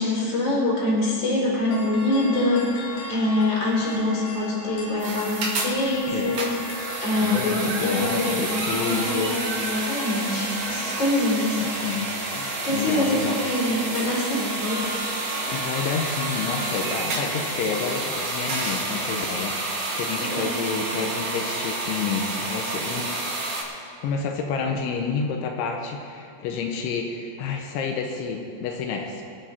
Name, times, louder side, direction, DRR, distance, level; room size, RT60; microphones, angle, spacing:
voice 1, 0.0-6.6 7.0-11.6 12.6-14.9 20.2-20.5 20.9-21.0, left 1 dB, 25° left, -5 dB, 4.2 m, -25 dB
sound 1, 1.7-18.6, left 2 dB, 65° left, 3.2 m, -38 dB
sound 2, 5.0-23.6, right 2 dB, 45° right, 2.5 m, -30 dB
voice 2, 7.2-9.4 11.8-12.1 12.4-13.4 15.5-19.7 20.0-23.1 24.0-29.2, left 5 dB, 85° left, 2 dB, 3.3 m, -29 dB
24.5 x 8.8 x 4.4 m, 2.5 s
omnidirectional pair, 5.3 m